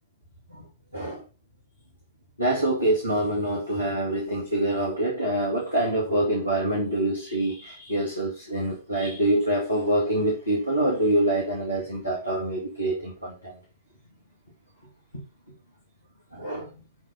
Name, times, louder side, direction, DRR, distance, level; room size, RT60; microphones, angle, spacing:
voice 1, 0.9-1.2 2.4-13.6 15.1-15.2 16.3-16.7, right 1 dB, 85° left, 2.3 m, -25 dB
12.0 x 4.0 x 5.5 m
figure-of-eight pair, 90°, 0 cm